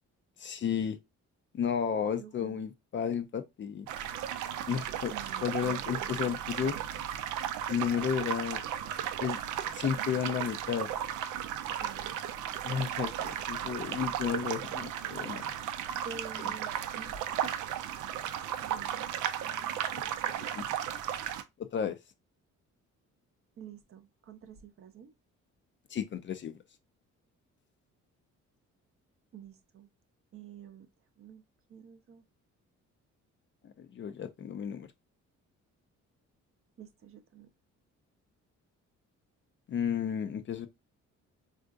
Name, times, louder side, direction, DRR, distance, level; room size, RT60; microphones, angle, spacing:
voice 1, 0.4-1.0 1.5-3.9 4.7-5.1 5.4-6.7 7.7-8.6 9.2-9.4 9.7-10.9 12.6-15.5 19.9-20.0 20.5-20.6 21.6-22.0 25.9-26.6 33.6-34.9 39.7-40.7, left 8 dB, 40° left, 0.4 m, -32 dB
voice 2, 2.2-2.6 5.1-7.0 11.8-12.1 16.0-17.5 18.6-19.1 19.4-19.7 23.6-25.1 29.3-29.9 30.3-30.9 31.2-31.4 31.7-32.2 36.8-37.5, right 6 dB, 45° right, 0.6 m, -49 dB
sound 1, 3.9-21.4, right 10 dB, 85° right, 0.5 m, -35 dB
3.6 x 2.5 x 2.3 m
cardioid pair, 90°, 30 cm